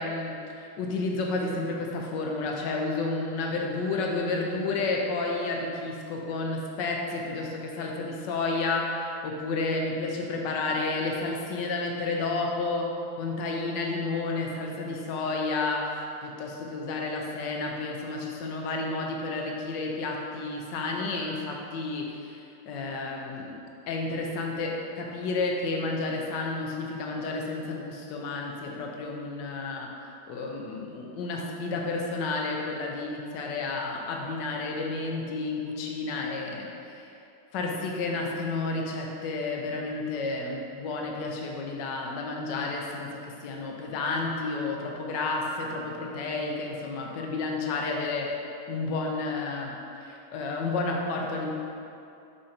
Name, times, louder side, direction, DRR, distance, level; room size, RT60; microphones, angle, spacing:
voice 1, 0.0-12.9 13.2-15.9 16.2-23.6 23.9-29.9 30.3-37.1 37.5-48.4 48.7-51.5, left 3 dB, 65° left, 0 dB, 1.2 m, -31 dB
6.3 x 5.6 x 2.8 m, 2.6 s
omnidirectional pair, 2.4 m